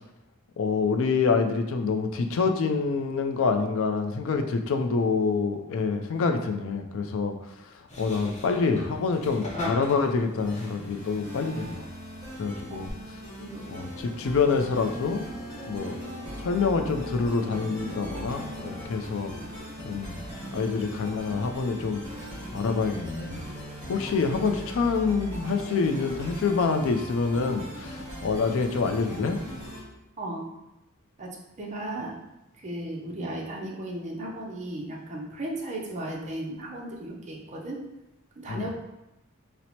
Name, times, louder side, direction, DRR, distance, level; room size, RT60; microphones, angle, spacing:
voice 1, 0.6-7.3 8.0-11.8 12.4-12.9 13.7-15.2 15.7-16.0 16.4-19.3 19.8-20.2 20.5-22.0 22.5-23.4 23.9-29.4 38.5-38.7, left 4 dB, 65° left, 6 dB, 0.4 m, -26 dB
sound 1, 7.9-12.9, left 1 dB, 35° left, 0.7 m, -40 dB
sound 2, 10.4-29.8, equal, 20° right, 1.4 m, -40 dB
sound 3, 13.5-18.9, left 1 dB, 5° left, 0.8 m, -42 dB
voice 2, 31.6-32.1 32.6-37.8 38.4-38.7, right 1 dB, 35° right, -2 dB, 0.5 m, -35 dB
4.3 x 2.0 x 2.8 m, 0.92 s
head